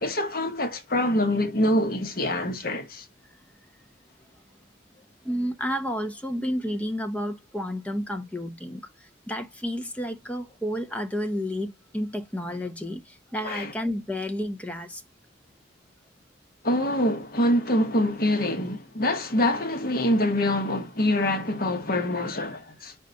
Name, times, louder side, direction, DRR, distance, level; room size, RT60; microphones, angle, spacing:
voice 1, 0.0-3.0 13.4-13.7 16.6-22.9, left 1 dB, 50° left, 1.2 m, -25 dB
voice 2, 5.2-15.0, equal, 10° left, 1.0 m, -31 dB
5.3 x 4.1 x 5.2 m
head